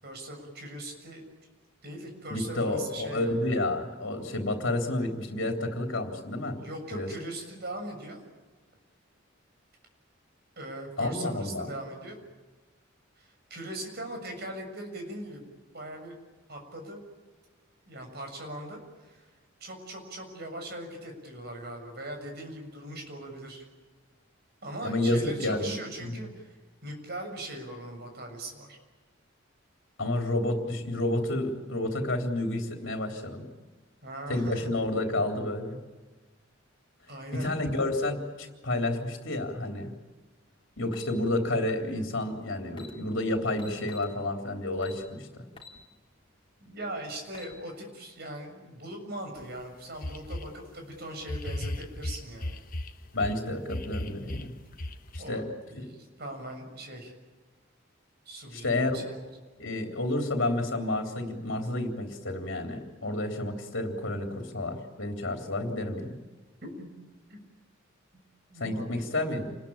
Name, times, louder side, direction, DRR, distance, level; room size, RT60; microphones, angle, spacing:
voice 1, 0.0-1.2 1.8-3.5 6.6-8.2 10.6-12.2 13.2-15.4 15.7-16.2 16.5-17.0 17.9-19.3 19.6-23.7 24.6-26.6 26.8-28.8 34.0-34.7 37.1-37.5 46.6-52.6 55.2-55.4 55.7-57.1 58.3-59.3 66.6-66.9 67.3-67.4 68.5-69.2, right 1 dB, 50° right, 4 dB, 7.0 m, -40 dB
voice 2, 2.3-6.6 6.9-7.1 11.0-11.7 24.8-25.8 26.0-26.2 30.0-33.5 34.3-35.8 37.3-39.9 40.8-45.4 53.1-54.5 55.1-55.9 58.5-59.1 59.6-66.2 68.6-69.6, left 2 dB, 65° left, 3 dB, 3.5 m, -30 dB
sound 1, 40.9-41.1 42.3-42.4 42.7-42.9 43.6-44.1 44.8-45.0 45.6-45.8 46.2-46.3 47.1-47.5, left 5 dB, 25° left, 3.8 m, -47 dB
sound 2, 49.4-49.5 50.0-50.6 51.2-53.4 53.7-55.2, left 1 dB, 45° left, 1.3 m, -35 dB
28.5 x 21.0 x 8.8 m, 1.3 s
head